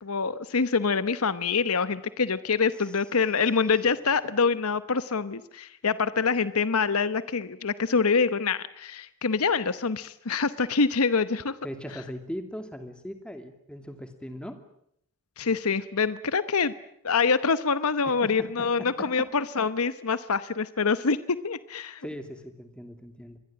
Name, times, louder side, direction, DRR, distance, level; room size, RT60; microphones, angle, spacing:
voice 1, 0.0-11.6 15.4-16.7 17.0-22.0, left 5 dB, 85° left, 14 dB, 0.9 m, -25 dB
voice 2, 11.6-14.6 18.1-19.3 22.0-23.4, equal, 5° left, 7 dB, 2.6 m, -39 dB
25.5 x 21.5 x 8.8 m, 0.72 s
head